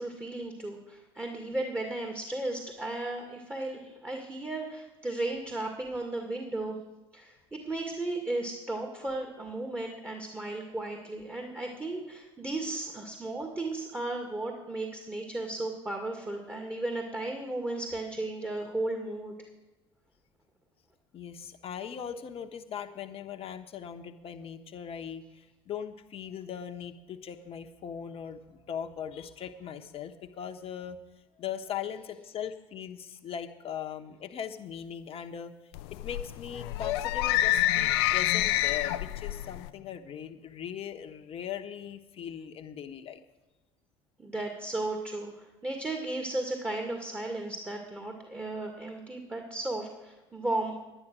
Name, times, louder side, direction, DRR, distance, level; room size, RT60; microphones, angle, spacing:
voice 1, 0.0-6.8 7.1-19.3 44.2-50.7, right 2 dB, 15° right, 2 dB, 2.1 m, -35 dB
voice 2, 21.1-31.0 31.4-35.5 35.9-43.2, left 8 dB, 45° left, 7 dB, 1.1 m, -39 dB
sound 1, 35.7-39.7, left 14 dB, 75° left, 0.5 m, -27 dB
10.5 x 10.5 x 6.1 m, 1.1 s
hypercardioid pair, 65°, 14 cm